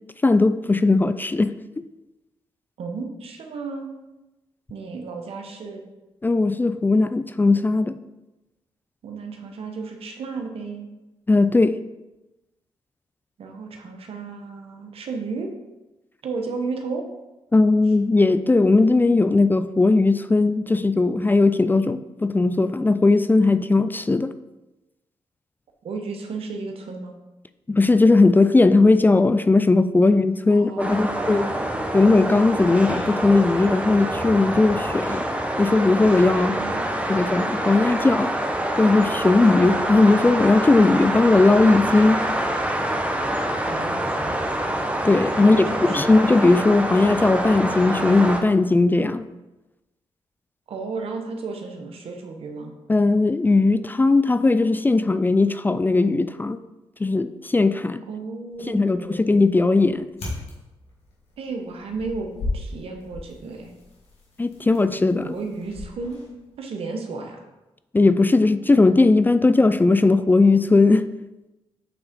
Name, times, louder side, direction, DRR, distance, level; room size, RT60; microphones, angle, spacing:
voice 1, 0.2-1.5 6.2-7.9 11.3-11.8 17.5-24.3 27.7-31.5 31.9-35.2 35.6-36.6 37.1-38.3 38.8-42.2 45.0-49.3 52.9-56.6 57.0-58.0 58.6-60.1 64.4-65.3 67.9-71.0, left 3 dB, 20° left, 12 dB, 0.3 m, -18 dB
voice 2, 2.8-3.9 4.7-5.8 9.0-10.9 13.4-15.5 16.2-17.1 25.8-27.2 30.5-31.9 36.5-37.2 43.7-44.4 45.5-46.1 50.7-52.7 58.1-59.4 61.4-63.7 65.2-66.2 66.6-67.4, right 4 dB, 75° right, 4 dB, 0.9 m, -33 dB
sound 1, 30.8-48.4, right 1 dB, 15° right, 1.0 m, -26 dB
sound 2, 58.5-66.6, left 2 dB, 80° left, 2.0 m, -37 dB
8.4 x 3.6 x 3.6 m, 1.0 s
cardioid pair, 55°, 10 cm